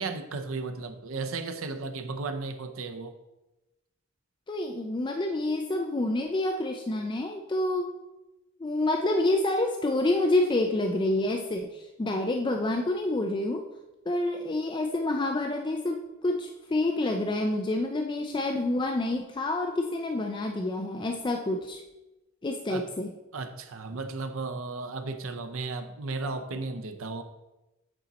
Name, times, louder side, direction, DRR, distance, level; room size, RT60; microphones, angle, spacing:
voice 1, 0.0-3.1 22.7-22.9 23.3-27.2, right 3 dB, 85° right, 8 dB, 0.7 m, -34 dB
voice 2, 4.5-7.9 8.6-13.7 14.1-21.8 22.4-23.1, left 2 dB, 25° left, 4 dB, 0.4 m, -28 dB
8.6 x 4.1 x 4.1 m, 1.0 s
head